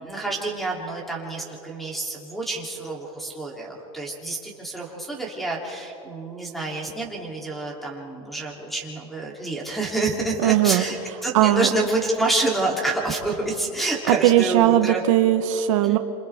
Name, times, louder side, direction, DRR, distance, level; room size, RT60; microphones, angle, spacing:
voice 1, 0.0-15.0 15.8-16.0, right 2 dB, ahead, -1 dB, 2.9 m, -28 dB
voice 2, 10.4-10.8 11.3-11.7 14.1-16.0, right 14 dB, 75° right, 9 dB, 0.9 m, -19 dB
28.0 x 27.0 x 3.5 m, 2.9 s
supercardioid pair, 160°, 17 cm